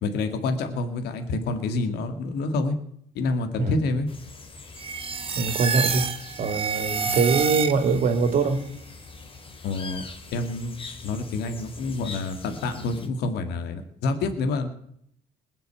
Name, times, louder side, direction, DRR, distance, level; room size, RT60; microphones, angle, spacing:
voice 1, 0.0-2.8 3.2-4.1 9.6-10.0 10.3-10.8 11.0-14.7, left 3 dB, 75° left, 7 dB, 2.0 m, -27 dB
sound 1, 4.1-13.1, left 4 dB, 30° left, 2.5 m, -43 dB
sound 2, 4.8-8.1, right 6 dB, 35° right, 1.4 m, -28 dB
voice 2, 5.4-6.1 6.4-8.7, right 4 dB, 55° right, 8 dB, 2.8 m, -23 dB
20.5 x 6.9 x 8.4 m, 0.70 s
cardioid pair, 110°, 17 cm